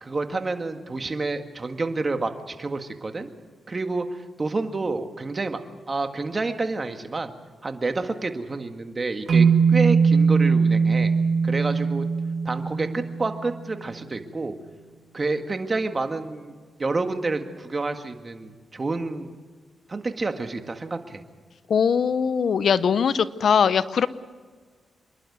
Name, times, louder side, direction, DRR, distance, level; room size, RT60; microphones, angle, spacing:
voice 1, 0.0-3.3 3.7-5.6 5.9-7.3 7.6-11.1 11.4-12.1 12.5-14.6 15.1-19.4 19.9-21.2, right 3 dB, 35° right, 7 dB, 1.8 m, -29 dB
sound 1, 9.3-13.6, right 5 dB, 65° right, 3.0 m, -20 dB
voice 2, 21.7-24.1, left 7 dB, 70° left, 15 dB, 0.7 m, -21 dB
26.5 x 11.5 x 9.5 m, 1.5 s
cardioid pair, 75°, 0 cm